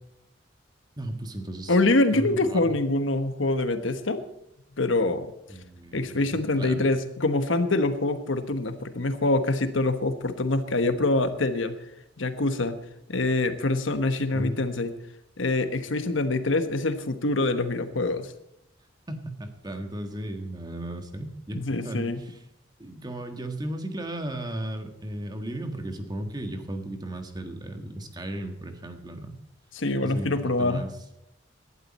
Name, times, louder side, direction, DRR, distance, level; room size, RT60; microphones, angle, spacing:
voice 1, 1.0-1.8 2.1-2.7 5.5-6.9 14.3-14.6 19.1-22.4 22.8-29.4 30.0-30.9, right 1 dB, 20° right, 6 dB, 1.5 m, -35 dB
voice 2, 1.7-4.2 4.8-5.3 5.9-11.7 12.2-12.8 13.1-14.9 15.4-18.3 21.5-22.2 29.7-30.8, left 2 dB, 80° left, 10 dB, 1.2 m, -25 dB
18.0 x 11.5 x 4.3 m, 0.80 s
head